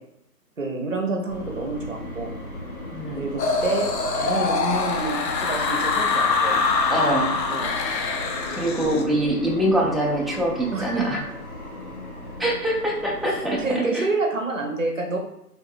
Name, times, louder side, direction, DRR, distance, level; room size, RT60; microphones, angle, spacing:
voice 1, 0.6-2.3 3.2-6.6 7.5-7.7 8.8-9.1 10.7-11.1 13.3-15.2, right 3 dB, 55° right, 1 dB, 0.5 m, -28 dB
sound 1, 1.3-13.8, left 2 dB, 60° left, 0.8 m, -37 dB
voice 2, 2.9-3.3 6.9-7.4 8.5-11.2 12.4-14.0, right 1 dB, ahead, -3 dB, 0.3 m, -24 dB
sound 2, 3.4-9.0, left 4 dB, 90° left, 0.6 m, -24 dB
3.3 x 2.0 x 2.4 m, 0.79 s
figure-of-eight pair, 175°, 49 cm